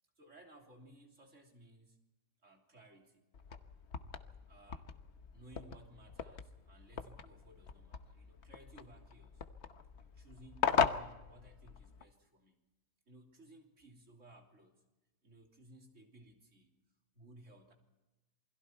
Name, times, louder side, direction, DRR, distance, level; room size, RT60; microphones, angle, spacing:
voice 1, 0.2-2.0 2.4-3.2 4.5-4.9 5.3-9.4 10.0-12.6 13.1-14.8 15.2-16.8 17.1-17.7, right 1 dB, 45° right, 1 dB, 3.5 m, -59 dB
sound 1, 3.3-12.0, left 6 dB, 50° left, 1.1 m, -39 dB
28.0 x 21.5 x 4.5 m, 1.1 s
omnidirectional pair, 1.7 m